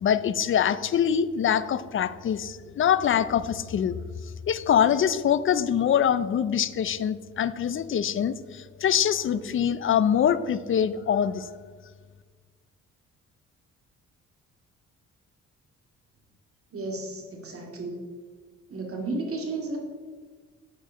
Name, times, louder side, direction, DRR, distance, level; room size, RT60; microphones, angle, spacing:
voice 1, 0.0-4.0 4.5-11.5, left 8 dB, 45° left, 15 dB, 0.5 m, -24 dB
voice 2, 16.7-18.0 18.7-19.8, right 2 dB, 50° right, 1 dB, 2.3 m, -33 dB
9.0 x 4.8 x 6.5 m, 1.5 s
cardioid pair, 90°, 30 cm